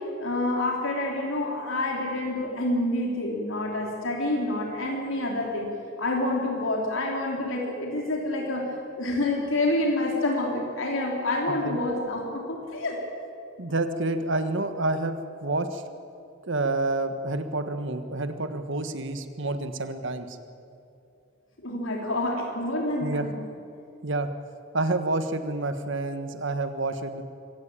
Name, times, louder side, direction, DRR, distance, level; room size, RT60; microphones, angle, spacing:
voice 1, 0.2-5.7 6.0-8.7 9.0-13.0 21.6-23.3, left 1 dB, 75° left, -1 dB, 3.7 m, -28 dB
voice 2, 11.5-11.8 13.6-15.8 16.5-20.4 23.0-23.3 24.0-24.3 24.7-27.2, right 2 dB, 65° right, 9 dB, 1.5 m, -28 dB
25.5 x 16.0 x 8.9 m, 2.6 s
head